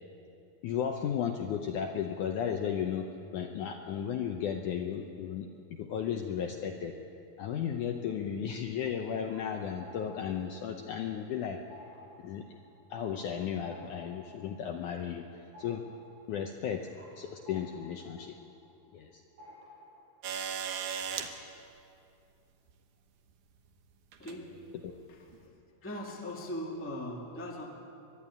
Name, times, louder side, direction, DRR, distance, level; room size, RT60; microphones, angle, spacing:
voice 1, 0.6-6.9 7.4-11.6 12.2-12.4 12.9-15.3 15.6-15.8 16.3-16.9 17.2-18.4 18.9-19.2 24.8-24.9, left 8 dB, 75° left, 3 dB, 1.9 m, -34 dB
sound 1, 8.8-11.3 11.6-19.1 19.4-20.2, left 1 dB, 85° right, 8.3 m, -55 dB
sound 2, 20.2-21.3 22.7-22.8 24.1-24.4 25.3-25.4, right 7 dB, 65° right, 2.2 m, -36 dB
voice 2, 24.2-25.5 25.8-27.7, left 1 dB, 5° left, -1 dB, 1.0 m, -40 dB
23.5 x 11.5 x 9.8 m, 2.6 s
omnidirectional pair, 4.5 m